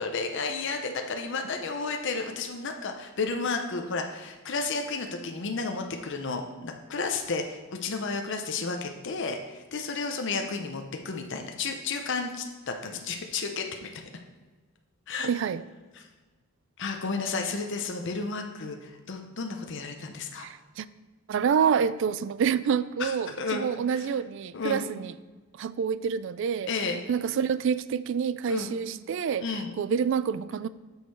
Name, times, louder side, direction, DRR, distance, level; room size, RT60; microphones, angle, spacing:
voice 1, 0.0-14.0 15.1-15.3 15.9-16.1 16.8-20.5 23.0-24.1 24.5-24.9 26.7-27.0 28.5-28.8 29.4-29.7, left 4 dB, 55° left, 0.6 m, -32 dB
voice 2, 15.2-15.6 20.4-20.9 21.3-25.1 25.6-26.7 27.1-29.5 29.8-30.7, right 7 dB, 60° right, 0.3 m, -27 dB
6.9 x 6.5 x 4.6 m
head